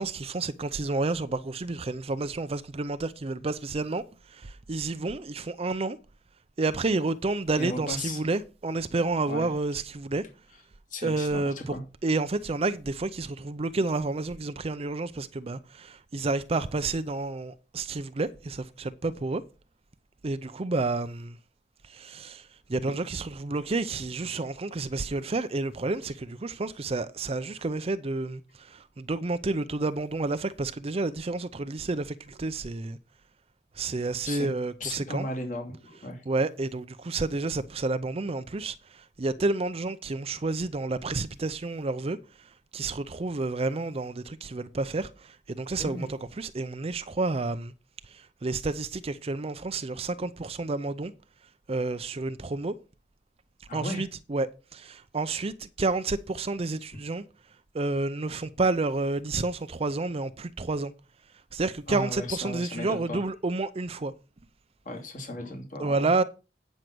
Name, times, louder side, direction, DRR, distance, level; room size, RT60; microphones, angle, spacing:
voice 1, 0.0-6.0 6.6-10.2 11.0-19.4 20.2-21.4 21.8-33.0 33.7-35.3 35.9-47.7 48.0-51.1 51.7-52.8 53.7-57.2 57.7-60.9 61.5-64.1 65.8-66.2, right 3 dB, 35° right, 0.5 m, -30 dB
voice 2, 7.6-8.2 9.3-9.5 10.9-11.8 34.2-34.5 34.8-36.2 45.8-46.0 53.7-54.0 61.9-63.2 64.8-66.1, left 1 dB, 50° left, 2.7 m, -35 dB
9.2 x 6.4 x 6.1 m
head